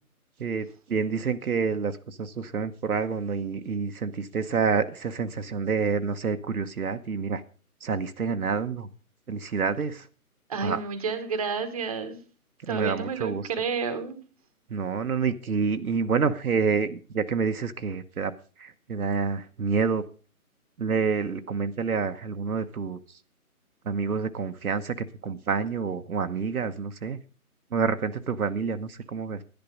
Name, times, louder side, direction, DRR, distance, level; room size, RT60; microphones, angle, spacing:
voice 1, 0.4-7.4 7.8-8.9 9.3-10.1 10.6-10.8 12.7-13.4 14.7-18.3 18.6-20.0 20.8-23.0 23.9-27.2 27.7-29.4, right 5 dB, 70° right, 8 dB, 1.1 m, -28 dB
voice 2, 10.5-12.2 12.7-14.2, right 5 dB, 25° right, 9 dB, 1.2 m, -30 dB
11.5 x 10.5 x 5.1 m, 0.36 s
hypercardioid pair, 165°, 45 cm